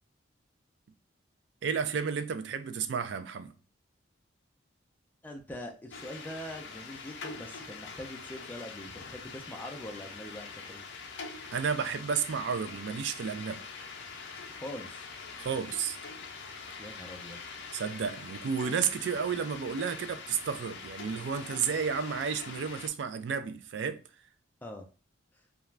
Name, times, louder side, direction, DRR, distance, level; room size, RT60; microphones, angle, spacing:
voice 1, 1.6-3.5 11.5-13.6 15.4-16.0 17.7-24.0, right 6 dB, 65° right, 0.3 m, -32 dB
voice 2, 5.2-10.9 14.5-15.0 16.8-17.4 24.6-24.8, left 1 dB, 10° left, 0.4 m, -43 dB
sound 1, 5.9-22.9, left 4 dB, 70° left, 0.5 m, -44 dB
2.4 x 2.2 x 3.1 m
head